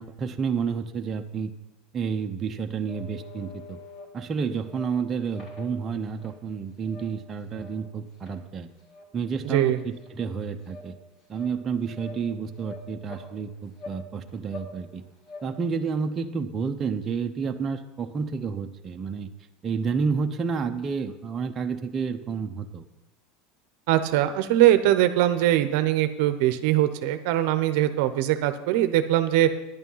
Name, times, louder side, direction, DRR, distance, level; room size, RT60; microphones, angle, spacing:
voice 1, 0.0-1.5 1.9-3.8 4.1-8.7 9.1-10.9 11.3-15.0 15.4-19.3 19.6-22.8, right 5 dB, 25° right, 4 dB, 0.8 m, -30 dB
sound 1, 2.9-4.1 4.6-4.9 5.3-6.4 6.8-7.1 7.4-7.8 8.2-8.4 8.8-9.1 9.5-9.6 9.9-10.3 10.6-10.8 11.3-11.5 11.8-12.2 12.6-13.2 13.8-14.0 14.3-14.7 15.0-15.4, left 3 dB, 45° left, 3.4 m, -44 dB
voice 2, 9.4-9.8 23.9-29.5, right 13 dB, 65° right, 10 dB, 0.8 m, -21 dB
10.5 x 9.0 x 5.6 m, 0.99 s
supercardioid pair, 125°, 0 cm